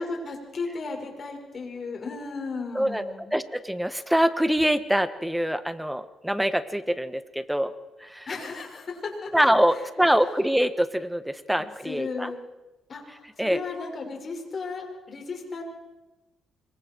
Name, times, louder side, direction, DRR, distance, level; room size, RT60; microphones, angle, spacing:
voice 1, 0.0-3.3 8.3-9.5 11.5-12.4 12.9-15.6, left 4 dB, 45° left, 2 dB, 5.7 m, -35 dB
voice 2, 2.7-7.7 8.0-8.3 9.3-12.3 13.4-13.6, equal, 5° right, 12 dB, 1.3 m, -24 dB
26.0 x 23.0 x 4.6 m, 1.1 s
cardioid pair, 90°, 0 cm